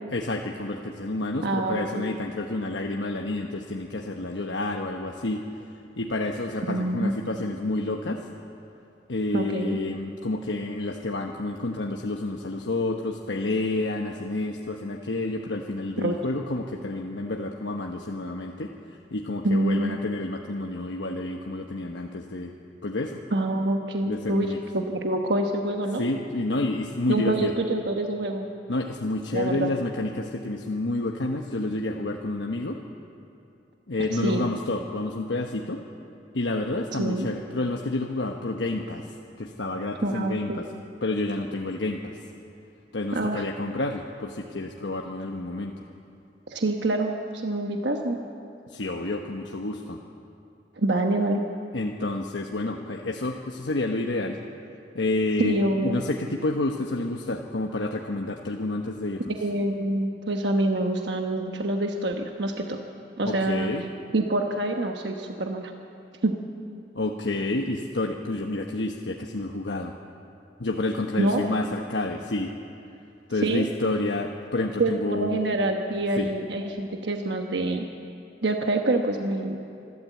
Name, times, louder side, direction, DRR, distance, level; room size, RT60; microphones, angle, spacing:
voice 1, 0.1-5.4 6.0-8.2 9.1-18.7 19.1-22.5 22.8-23.2 24.1-24.6 26.0-27.5 28.7-32.8 33.9-35.8 36.3-39.1 39.4-40.7 41.0-42.2 42.9-45.7 48.7-50.0 51.7-54.4 54.9-59.3 63.2-63.9 66.9-69.9 70.6-72.5 73.3-75.4 76.2-76.3, left 2 dB, 85° left, 1 dB, 1.1 m, -29 dB
voice 2, 1.4-2.1 6.7-7.1 9.3-9.8 16.0-16.2 19.4-20.0 23.3-26.0 27.1-28.5 29.3-29.7 34.1-34.5 37.0-37.3 40.0-40.6 43.1-43.4 46.5-48.2 50.8-51.4 55.4-56.0 59.4-62.8 63.2-63.7 64.1-65.7 66.2-66.3 71.2-71.4 73.4-73.6 74.8-77.9 78.4-79.6, right 2 dB, 70° right, 3 dB, 1.2 m, -26 dB
26.0 x 12.5 x 8.3 m, 2.7 s
head